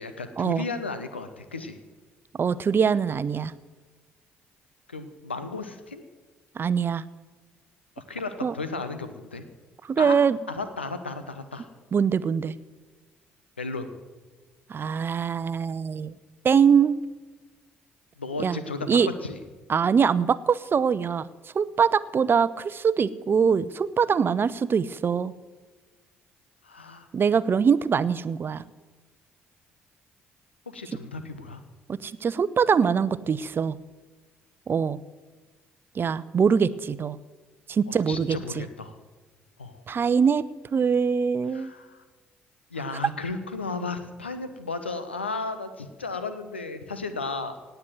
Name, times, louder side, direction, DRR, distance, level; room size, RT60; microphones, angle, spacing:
voice 1, 0.0-1.8 4.9-6.0 8.0-9.5 10.0-10.2 10.5-11.7 13.6-13.9 18.2-19.4 26.6-27.1 30.7-31.6 38.1-38.9 39.6-39.8 41.5-42.0 42.7-47.6, left 3 dB, 90° left, 10 dB, 1.0 m, -34 dB
voice 2, 2.4-3.5 6.6-7.0 8.4-8.5 9.8-10.4 11.9-12.5 14.7-16.1 16.4-17.0 18.4-18.6 18.9-19.1 19.7-21.3 21.5-25.3 27.1-28.6 31.9-33.8 34.7-35.0 35.9-37.2 37.7-38.7 39.9-40.4 40.7-41.7, right 6 dB, 40° right, 17 dB, 0.7 m, -23 dB
18.0 x 6.9 x 9.4 m, 1.3 s
figure-of-eight pair, 45°, 6 cm